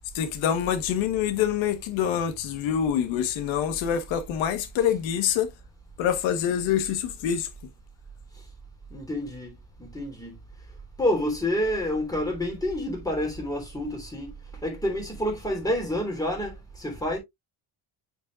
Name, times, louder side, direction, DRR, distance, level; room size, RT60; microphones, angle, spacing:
voice 1, 0.1-5.5 6.0-7.5, left 9 dB, 85° left, 1.4 m, -26 dB
voice 2, 8.9-10.4 11.0-14.3 14.6-17.2, left 1 dB, 10° left, 3.4 m, -28 dB
8.8 x 5.4 x 2.5 m
cardioid pair, 150°, 45 cm